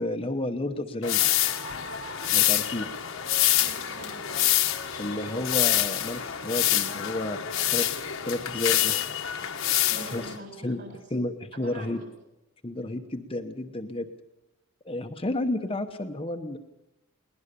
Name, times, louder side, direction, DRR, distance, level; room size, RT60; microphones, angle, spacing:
voice 1, 0.0-1.4 2.3-2.9 4.9-7.4 7.7-7.8 8.2-9.0 10.1-10.3 10.6-10.8 11.1-12.0 12.6-14.1 14.8-16.6, left 1 dB, 25° left, 5 dB, 1.0 m, -31 dB
sound 1, 1.0-10.4, left 12 dB, 60° left, 1.3 m, -26 dB
voice 2, 3.6-4.4 6.2-6.4 9.9-10.9 11.5-12.1, right 2 dB, 50° right, 2 dB, 7.9 m, -44 dB
21.0 x 19.5 x 6.8 m, 0.96 s
head